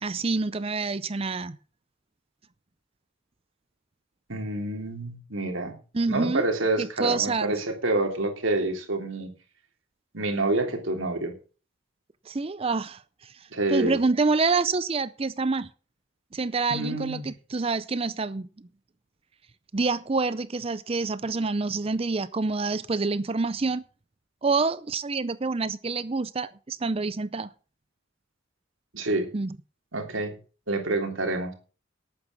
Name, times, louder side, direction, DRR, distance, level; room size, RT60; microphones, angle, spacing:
voice 1, 0.0-1.6 5.9-6.5 6.8-7.5 12.3-13.0 13.7-15.7 16.3-18.5 19.7-23.8 24.4-27.5 29.3-29.5, right 3 dB, 30° right, 0.5 m, -27 dB
voice 2, 4.3-5.7 6.1-9.3 10.1-11.3 13.5-14.0 16.7-17.3 28.9-29.3 29.9-30.3 30.7-31.5, right 2 dB, 75° right, 3.3 m, -27 dB
12.0 x 8.9 x 6.1 m
head